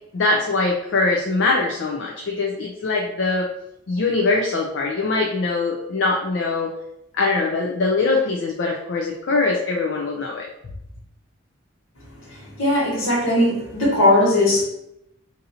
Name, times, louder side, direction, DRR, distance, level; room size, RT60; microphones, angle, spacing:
voice 1, 0.1-3.5 3.9-6.7 7.1-10.5, left 3 dB, 60° left, -1 dB, 0.4 m, -22 dB
voice 2, 12.6-14.6, left 1 dB, 75° left, -4 dB, 1.5 m, -18 dB
2.7 x 2.6 x 4.2 m, 0.81 s
head